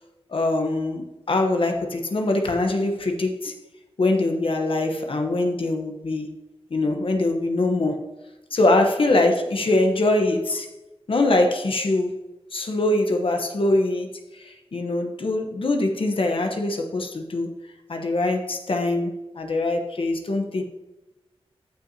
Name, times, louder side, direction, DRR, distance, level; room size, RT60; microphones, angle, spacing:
voice 1, 0.3-3.5 4.0-6.3 6.7-8.1 8.5-10.7 11.1-12.2 12.5-17.5 17.9-20.6, left 2 dB, 60° left, 4 dB, 1.0 m, -23 dB
14.5 x 5.7 x 2.8 m, 1.0 s
wide cardioid pair, 105°, 10 cm